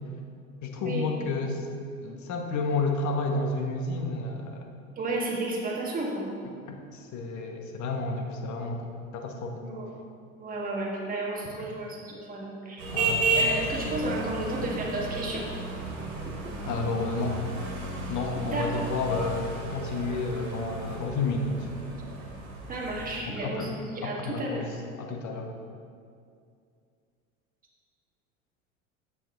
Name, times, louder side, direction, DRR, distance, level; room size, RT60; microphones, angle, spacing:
voice 1, 0.6-1.7 2.0-4.6 6.7-9.6 12.9-13.2 16.7-17.4 18.1-21.7 23.3-23.7 24.0-24.7 25.0-25.5, left 3 dB, 45° left, 3 dB, 1.4 m, -31 dB
voice 2, 5.0-6.3 9.6-9.9 10.4-12.8 13.4-15.5 16.4-16.5 18.4-18.8 22.7-24.7, right 2 dB, 20° right, -3 dB, 1.9 m, -32 dB
sound 1, 12.8-23.2, right 2 dB, 90° right, 1.7 m, -33 dB
9.4 x 7.2 x 3.9 m, 2.4 s
hypercardioid pair, 85°, 40 cm